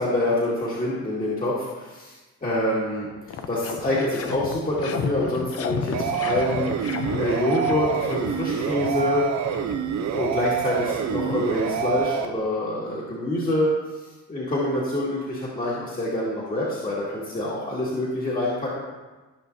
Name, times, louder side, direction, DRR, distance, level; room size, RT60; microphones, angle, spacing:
voice 1, 0.0-2.1 2.4-3.1 3.5-9.3 10.1-13.7 14.3-18.8, left 1 dB, 30° left, -7 dB, 2.1 m, -26 dB
sound 1, 3.0-12.4, left 6 dB, 50° left, 0.7 m, -34 dB
sound 2, 5.9-12.3, right 9 dB, 65° right, 0.8 m, -27 dB
14.0 x 5.9 x 2.8 m, 1.2 s
cardioid pair, 90°, 30 cm